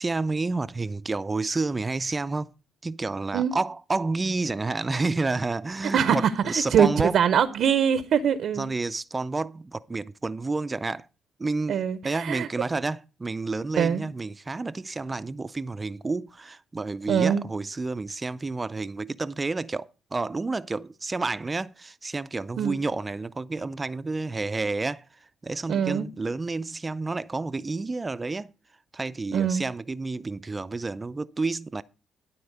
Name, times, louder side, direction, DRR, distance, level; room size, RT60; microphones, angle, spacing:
voice 1, 0.0-2.5 2.8-7.2 8.6-11.1 11.4-25.0 25.4-28.5 28.9-31.8, right 3 dB, 25° right, 0.4 m, -30 dB
voice 2, 5.9-8.7 11.7-12.5 13.8-14.1 17.1-17.4 22.6-22.7 25.7-26.1 29.3-29.6, right 8 dB, 70° right, 0.6 m, -23 dB
12.5 x 4.3 x 6.5 m
cardioid pair, 90°, 0 cm